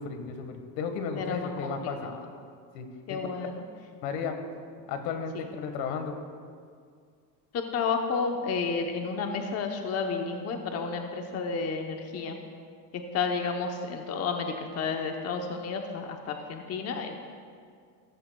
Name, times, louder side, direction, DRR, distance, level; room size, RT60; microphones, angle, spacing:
voice 1, 0.0-2.1 2.7-3.3 4.0-4.4 4.9-6.2, left 5 dB, 75° left, 6 dB, 1.6 m, -34 dB
voice 2, 1.2-2.1 3.1-3.6 5.3-5.5 7.5-12.4 12.9-17.2, left 5 dB, 30° left, 3 dB, 0.9 m, -31 dB
16.0 x 14.0 x 2.3 m, 2.1 s
supercardioid pair, 135°, 49 cm